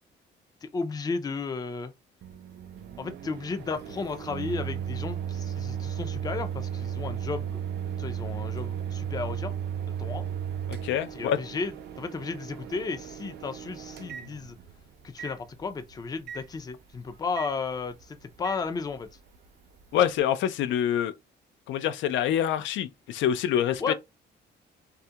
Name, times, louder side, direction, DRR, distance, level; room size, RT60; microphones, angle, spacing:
voice 1, 0.6-1.9 3.0-7.6 8.0-9.6 9.9-10.3 11.1-14.6 15.0-19.1 23.8-23.9, left 4 dB, 20° left, 0.4 m, -34 dB
Microwave oven, 2.2-14.8 15.2-15.3 16.3-16.4 17.4-17.5 18.4-18.6, right 9 dB, 60° right, 0.4 m, -35 dB
voice 2, 10.7-11.4 19.9-21.1 21.7-23.9, left 10 dB, 85° left, 0.4 m, -26 dB
2.3 x 2.1 x 2.7 m
cardioid pair, 125°, 19 cm